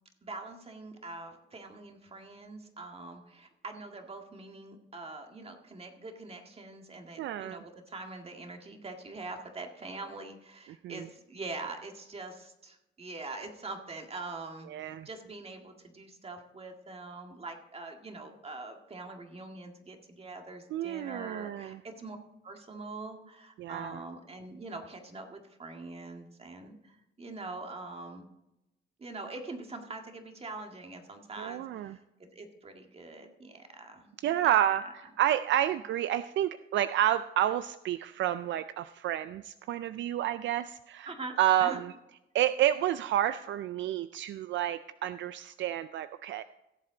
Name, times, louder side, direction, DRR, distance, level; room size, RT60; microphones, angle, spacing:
voice 1, 0.2-22.2 22.4-28.3 29.0-34.5 41.1-41.8, right 3 dB, 30° right, 4 dB, 1.9 m, -44 dB
voice 2, 7.2-7.6 10.8-10.9 14.7-15.1 20.7-21.8 23.6-24.0 31.4-31.9 34.2-34.8 35.2-41.1 41.4-41.8 42.3-46.4, right 11 dB, 70° right, 13 dB, 0.4 m, -29 dB
17.0 x 7.5 x 3.9 m, 0.93 s
cardioid pair, 90°, 20 cm